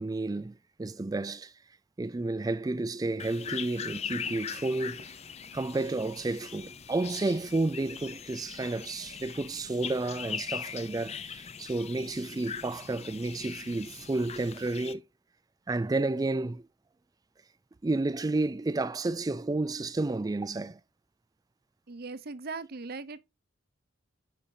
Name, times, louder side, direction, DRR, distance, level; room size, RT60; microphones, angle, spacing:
voice 1, 0.0-1.5 2.0-5.1 5.5-15.0 15.7-16.6 17.8-20.8, right 2 dB, 20° right, 0.3 m, -31 dB
sound 1, 3.2-14.9, left 7 dB, 35° left, 0.5 m, -41 dB
voice 2, 21.9-23.2, right 4 dB, 50° right, 0.7 m, -39 dB
9.1 x 5.1 x 2.7 m
head